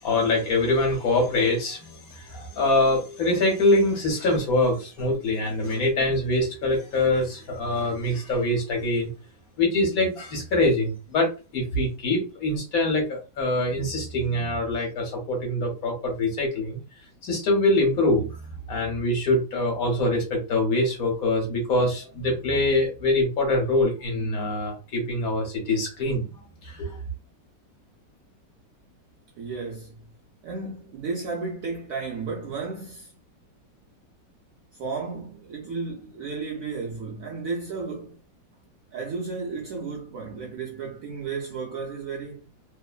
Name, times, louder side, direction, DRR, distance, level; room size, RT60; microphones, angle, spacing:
voice 1, 0.0-9.1 9.6-16.8 17.2-18.4 18.7-26.3 26.6-27.0, left 2 dB, 60° left, 1.2 m, -24 dB
voice 2, 29.4-30.0 30.4-33.1 34.8-38.2 38.9-42.5, right 4 dB, 75° right, 0.8 m, -33 dB
3.0 x 2.1 x 2.3 m
omnidirectional pair, 1.9 m